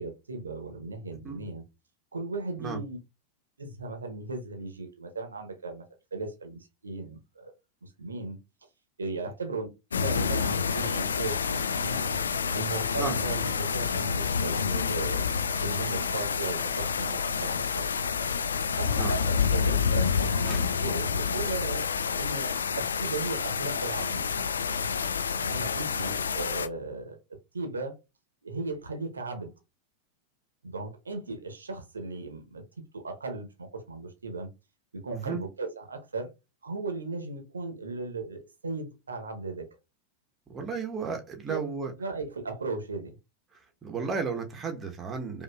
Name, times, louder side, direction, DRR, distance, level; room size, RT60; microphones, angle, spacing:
voice 1, 0.0-1.6 2.1-3.0 3.6-5.9 6.1-7.5 7.8-8.4 9.0-12.1 12.5-17.9 18.8-21.9 22.2-24.3 25.3-27.2 27.5-28.0 28.4-29.5 30.6-32.6 32.9-34.5 34.9-36.3 36.6-39.7 41.5-41.6 42.0-43.2, right 3 dB, 75° right, 0.8 m, -36 dB
sound 1, 9.9-26.7, left 6 dB, 70° left, 0.4 m, -28 dB
sound 2, 15.8-23.8, left 3 dB, 20° left, 1.6 m, -52 dB
voice 2, 35.1-35.4 40.5-41.9 43.8-45.4, right 5 dB, 20° right, 0.9 m, -33 dB
5.0 x 2.5 x 2.3 m
figure-of-eight pair, 90°, 0 cm